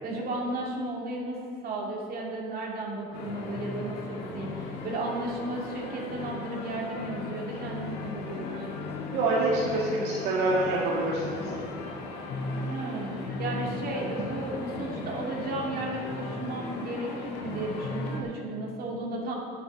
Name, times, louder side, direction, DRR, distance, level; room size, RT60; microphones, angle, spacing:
voice 1, 0.0-8.6 12.7-19.3, right 2 dB, 60° right, -2 dB, 2.6 m, -34 dB
sound 1, 3.1-18.2, left 3 dB, 90° left, 2.0 m, -36 dB
voice 2, 9.1-11.5, right 2 dB, 85° right, -6 dB, 2.2 m, -26 dB
9.7 x 8.6 x 7.2 m, 2.3 s
cardioid pair, 110°, 17 cm